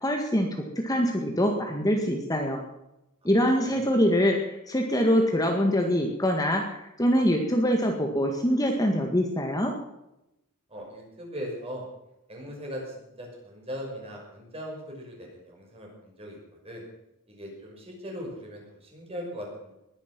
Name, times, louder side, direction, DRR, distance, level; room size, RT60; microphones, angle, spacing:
voice 1, 0.0-2.6 3.2-9.7, equal, 15° left, 2 dB, 1.8 m, -24 dB
voice 2, 3.5-3.9 10.7-11.9 12.3-16.4 16.6-16.8 17.3-19.7, equal, 30° right, -1 dB, 5.8 m, -39 dB
20.5 x 11.0 x 6.1 m, 0.88 s
head